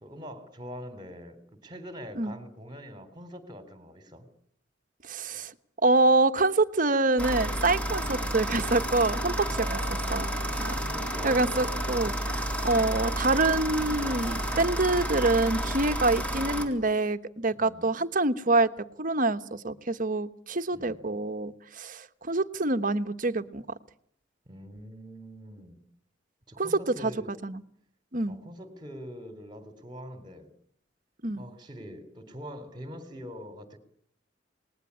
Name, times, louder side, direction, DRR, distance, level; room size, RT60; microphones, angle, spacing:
voice 1, 0.0-4.3 9.5-10.2 10.8-11.6 17.6-17.9 20.7-21.0 24.5-25.8 26.5-27.3 28.3-30.5 31.4-33.8, equal, 25° right, 3.8 m, -44 dB
voice 2, 5.0-5.5 5.8-9.8 10.1-10.3 10.6-10.7 11.2-18.7 19.0-23.6 26.6-26.7 27.0-27.1 27.4-27.6 28.1-28.4 31.2-31.5, right 2 dB, 45° right, 1.2 m, -26 dB
sound 1, 7.2-16.7, right 1 dB, 5° left, 3.8 m, -31 dB
28.0 x 20.0 x 8.5 m
head